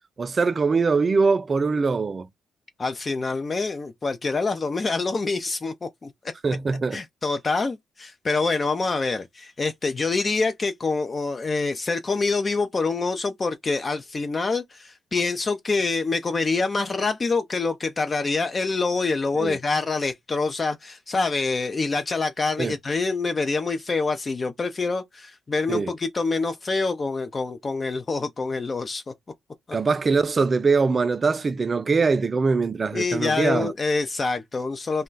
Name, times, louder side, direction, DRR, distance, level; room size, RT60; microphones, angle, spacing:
voice 1, 0.2-2.3 6.4-7.0 19.4-19.6 22.6-22.7 25.7-25.9 29.7-33.7, right 4 dB, 40° right, 0.3 m, -22 dB
voice 2, 2.8-6.1 6.9-29.1 32.9-35.0, left 3 dB, 40° left, 0.4 m, -26 dB
2.2 x 2.1 x 3.8 m
supercardioid pair, 55°, 0 cm